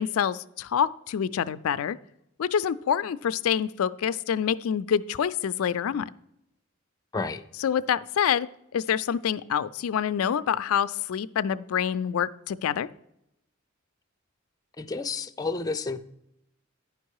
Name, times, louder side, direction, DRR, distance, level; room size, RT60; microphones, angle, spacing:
voice 1, 0.0-2.0 2.4-6.1 7.6-8.5 8.7-12.9, left 8 dB, 85° left, 14 dB, 0.4 m, -26 dB
voice 2, 14.8-16.0, left 3 dB, 20° left, 7 dB, 0.4 m, -30 dB
10.5 x 5.4 x 4.7 m, 0.81 s
head